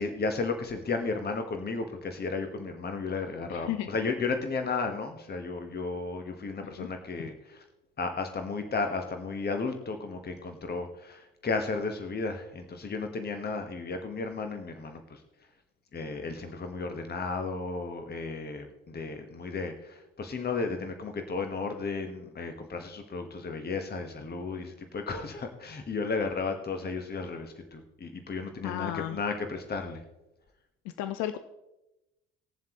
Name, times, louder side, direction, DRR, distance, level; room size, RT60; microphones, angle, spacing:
voice 1, 0.0-7.6 8.0-15.2 15.9-30.0, left 4 dB, 30° left, 6 dB, 1.4 m, -34 dB
voice 2, 3.5-3.9 6.8-6.9 28.6-29.2 30.8-31.4, left 12 dB, 60° left, 10 dB, 0.7 m, -33 dB
19.5 x 7.3 x 3.1 m, 0.93 s
hypercardioid pair, 55°, 32 cm